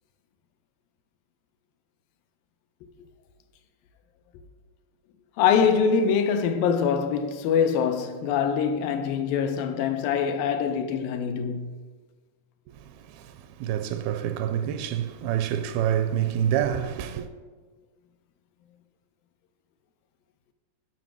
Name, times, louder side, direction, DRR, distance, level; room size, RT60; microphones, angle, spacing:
voice 1, 5.4-11.8, left 6 dB, 80° left, 2.3 m, -24 dB
voice 2, 13.6-17.3, right 10 dB, 85° right, 2.4 m, -26 dB
9.2 x 6.0 x 5.9 m
omnidirectional pair, 4.2 m